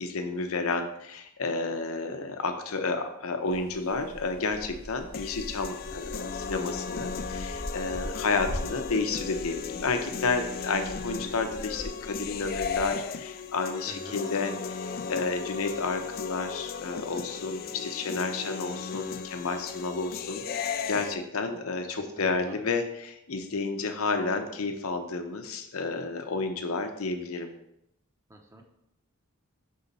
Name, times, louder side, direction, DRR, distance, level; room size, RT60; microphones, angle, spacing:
voice 1, 0.0-27.5, left 3 dB, 85° left, 6 dB, 0.8 m, -31 dB
sound 1, 3.5-12.9, equal, 85° right, 2.4 m, -42 dB
sound 2, 5.1-21.1, left 6 dB, 45° left, 0.3 m, -36 dB
voice 2, 28.3-28.6, right 1 dB, 15° right, 3 dB, 0.7 m, -45 dB
5.5 x 4.0 x 5.4 m, 0.78 s
head